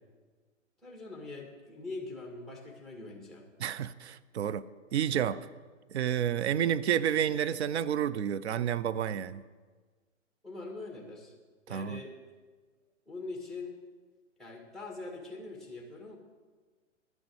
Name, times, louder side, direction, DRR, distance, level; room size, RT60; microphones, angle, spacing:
voice 1, 0.8-3.5 10.4-11.3 11.7-12.2 13.1-13.8 14.4-16.2, left 3 dB, ahead, 2.0 m, -43 dB
voice 2, 3.6-4.6 4.9-5.5 5.9-9.4 11.7-12.0, right 9 dB, 60° right, 0.6 m, -30 dB
11.0 x 6.3 x 8.8 m
hypercardioid pair, 135°, 38 cm